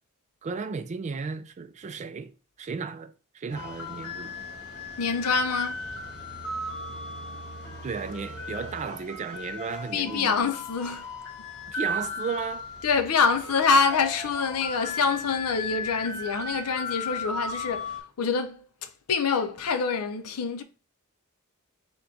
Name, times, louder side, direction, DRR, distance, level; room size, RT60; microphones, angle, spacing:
voice 1, 0.4-2.3 2.6-4.4 7.8-10.3 11.7-12.7, right 5 dB, 30° right, 0.3 m, -34 dB
sound 1, 3.5-18.0, left 2 dB, 55° left, 1.4 m, -36 dB
voice 2, 5.0-5.8 9.9-11.1 12.8-20.6, left 5 dB, 80° left, 0.6 m, -26 dB
3.8 x 2.2 x 4.3 m
head